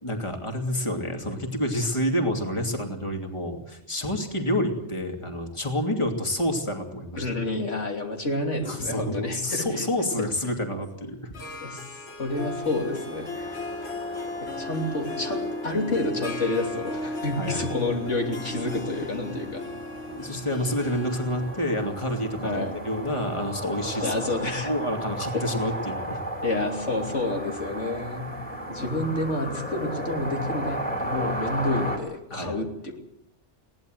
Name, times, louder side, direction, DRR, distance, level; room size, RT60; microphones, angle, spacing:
voice 1, 0.0-7.3 8.7-11.4 14.5-14.6 17.3-17.7 20.1-24.1 24.6-26.2 32.3-32.6, left 1 dB, 25° left, 3 dB, 2.8 m, -28 dB
voice 2, 7.2-9.9 10.2-10.3 11.6-13.6 14.4-19.6 22.4-22.7 24.0-24.7 25.3-25.4 26.4-28.3 28.7-33.0, left 2 dB, 80° left, 2 dB, 3.4 m, -29 dB
Harp, 11.3-24.9, left 2 dB, 60° left, 2.3 m, -36 dB
sound 1, 12.3-32.0, right 1 dB, 5° left, 3.7 m, -36 dB
21.5 x 18.0 x 7.9 m, 0.77 s
omnidirectional pair, 1.2 m